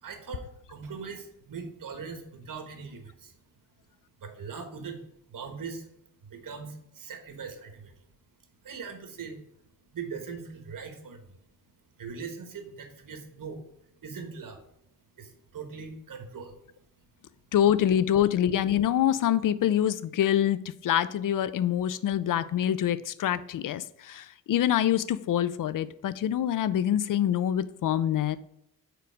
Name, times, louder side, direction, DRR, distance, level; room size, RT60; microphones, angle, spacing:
voice 1, 0.0-3.3 4.2-5.0 5.3-5.9 6.2-7.9 8.6-9.4 9.9-11.3 12.0-13.6 14.0-14.6 15.2-16.6 17.0-17.1, right 5 dB, 65° right, 5 dB, 1.3 m, -40 dB
voice 2, 17.5-28.4, left 10 dB, 65° left, 16 dB, 0.5 m, -25 dB
5.0 x 4.6 x 4.7 m, 0.81 s
cardioid pair, 75°, 35 cm